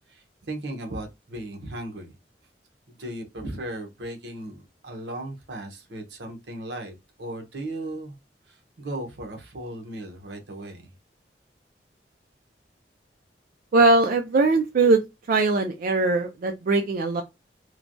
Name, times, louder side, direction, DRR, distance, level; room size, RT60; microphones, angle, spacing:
voice 1, 0.1-2.2 2.9-8.2 8.5-10.9, right 1 dB, 75° right, 0.8 m, -36 dB
voice 2, 13.7-15.0 15.3-17.2, right 3 dB, 50° right, 0.4 m, -20 dB
3.1 x 2.2 x 2.5 m
head